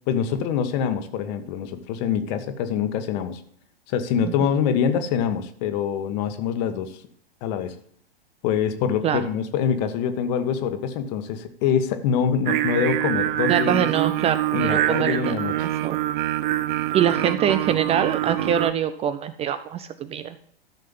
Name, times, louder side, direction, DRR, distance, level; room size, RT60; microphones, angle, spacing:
voice 1, 0.1-3.4 3.9-7.0 7.4-7.7 8.4-13.9 14.5-15.7, left 7 dB, 40° left, 9 dB, 1.4 m, -25 dB
Singing, 12.5-18.7, right 14 dB, 55° right, 0.8 m, -25 dB
voice 2, 13.5-15.4 15.8-16.0 16.9-20.4, right 9 dB, 20° right, 11 dB, 0.6 m, -24 dB
13.5 x 6.5 x 5.6 m, 0.62 s
hypercardioid pair, 110°, 31 cm